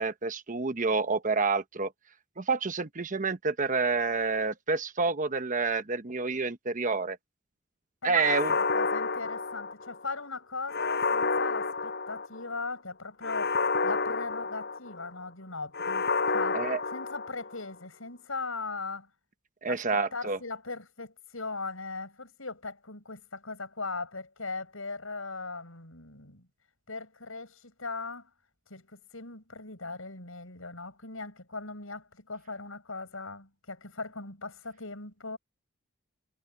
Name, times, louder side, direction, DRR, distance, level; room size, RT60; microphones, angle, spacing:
voice 1, 0.0-1.9 2.4-7.2 8.0-8.5 16.5-16.8 19.6-20.4, right 4 dB, 40° right, 1.0 m, -28 dB
voice 2, 8.0-13.6 13.8-19.1 19.7-26.5 26.9-28.3 28.7-35.4, left 3 dB, 80° left, 7.2 m, -39 dB
sound 1, 8.2-10.0 10.7-12.5 13.2-15.1 15.7-17.6, left 4 dB, 55° left, 6.4 m, -30 dB
head